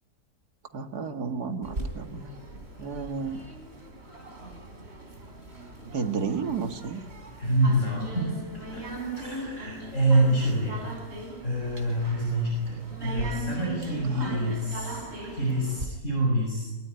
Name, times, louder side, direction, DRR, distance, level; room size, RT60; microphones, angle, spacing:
voice 1, 0.7-2.3 2.8-3.5 5.8-7.0 14.1-14.4, right 5 dB, 65° right, 6 dB, 2.4 m, -32 dB
sound 1, 1.6-15.9, right 1 dB, 40° right, 4.0 m, -39 dB
voice 2, 7.4-8.3 8.7-8.8 9.1-10.8 11.4-15.0 15.3-16.7, right 1 dB, 45° left, -2 dB, 6.5 m, -26 dB
24.5 x 21.5 x 9.6 m, 1.2 s
omnidirectional pair, 1.8 m